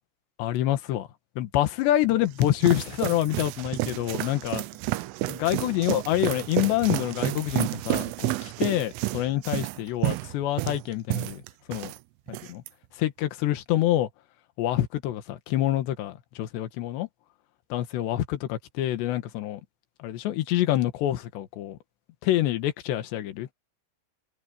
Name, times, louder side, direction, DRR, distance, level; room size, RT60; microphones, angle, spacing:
voice 1, 0.4-1.1 1.4-4.6 5.3-11.4 11.7-11.9 12.3-12.6 13.0-14.1 14.6-17.1 17.7-19.6 20.0-21.8 22.2-23.5, left 14 dB, 65° left, 3.4 m, -26 dB
sound 1, 2.0-12.0 12.3-12.7, right 20 dB, 90° right, 3.3 m, -30 dB
omnidirectional pair, 5.8 m